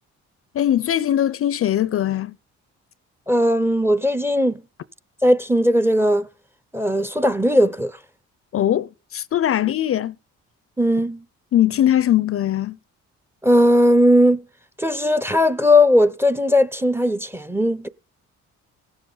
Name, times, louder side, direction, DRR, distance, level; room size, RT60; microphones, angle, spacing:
voice 1, 0.5-2.4 8.5-10.1 11.5-12.8, left 11 dB, 50° left, 0.5 m, -20 dB
voice 2, 3.3-4.6 5.2-6.3 6.7-8.0 10.8-11.2 13.4-14.4 14.8-17.9, left 1 dB, 10° right, 0.6 m, -18 dB
17.0 x 7.1 x 3.9 m
cardioid pair, 90°, 30 cm